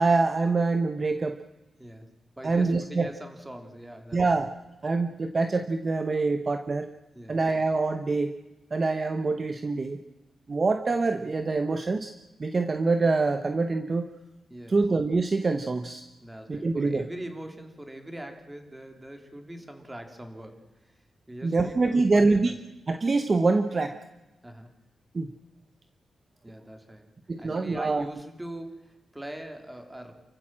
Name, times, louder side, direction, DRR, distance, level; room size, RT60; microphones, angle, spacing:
voice 1, 0.0-1.4 2.4-3.1 4.1-4.5 4.8-6.9 7.3-8.3 8.7-10.0 10.5-12.1 12.4-14.1 14.7-16.0 16.5-17.1 21.4-22.5 22.9-23.9 25.1-25.3 27.3-28.1, right 3 dB, 35° right, 8 dB, 1.0 m, -25 dB
voice 2, 1.8-4.4 7.1-7.4 14.5-14.8 16.2-20.9 21.3-22.5 24.4-24.7 26.4-30.1, right 1 dB, 10° right, 5 dB, 3.2 m, -42 dB
29.0 x 15.0 x 7.5 m, 1.1 s
wide cardioid pair, 110°, 0 cm